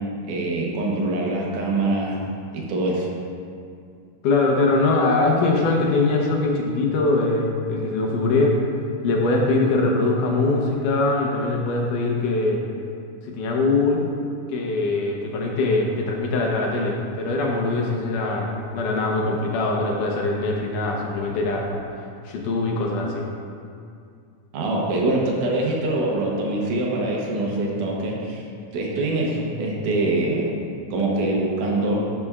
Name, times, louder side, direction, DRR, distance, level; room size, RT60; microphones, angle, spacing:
voice 1, 0.3-2.3 2.5-3.1 24.5-28.4 28.7-30.6 30.9-32.0, right 2 dB, 80° right, -2 dB, 2.6 m, -24 dB
voice 2, 4.2-8.6 9.0-12.6 13.2-14.0 14.5-21.8 22.3-23.2, left 3 dB, 85° left, 0 dB, 2.5 m, -22 dB
11.0 x 6.7 x 2.4 m, 2.3 s
omnidirectional pair, 3.6 m